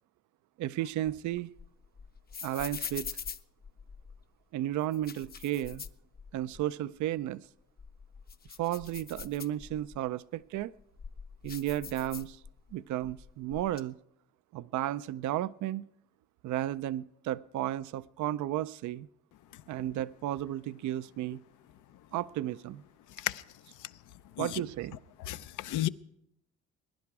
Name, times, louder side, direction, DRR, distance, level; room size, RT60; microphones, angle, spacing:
voice 1, 0.6-1.5 2.4-3.1 4.5-5.8 6.3-7.4 8.6-10.7 11.4-12.4 12.7-13.9 14.5-15.9 16.4-19.1 19.7-21.4 22.1-22.8 24.4-25.0, right 13 dB, 75° right, 0.5 m, -33 dB
sound 1, 0.8-4.2 4.8-6.6 7.0-7.1 7.6-10.0 10.6-12.7 13.0-13.8, left 6 dB, 30° left, 0.6 m, -44 dB
voice 2, 25.3-25.9, left 15 dB, 85° left, 0.6 m, -32 dB
21.5 x 10.5 x 4.7 m
cardioid pair, 90°, 30 cm